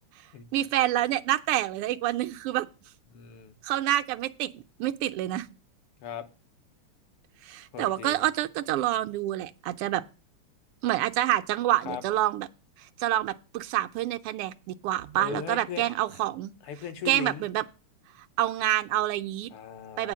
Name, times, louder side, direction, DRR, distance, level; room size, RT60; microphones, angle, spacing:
voice 1, 0.5-2.7 3.6-5.5 7.4-10.0 10.8-12.5 13.0-16.5 17.1-17.6 18.4-19.5 20.0-20.1, right 14 dB, 85° right, 1.6 m, -27 dB
voice 2, 3.1-3.5 6.0-6.2 7.7-8.2 11.9-12.0 15.2-15.8 16.1-16.2 16.6-17.5 19.5-20.1, left 8 dB, 85° left, 1.9 m, -38 dB
8.9 x 4.3 x 7.3 m
omnidirectional pair, 2.4 m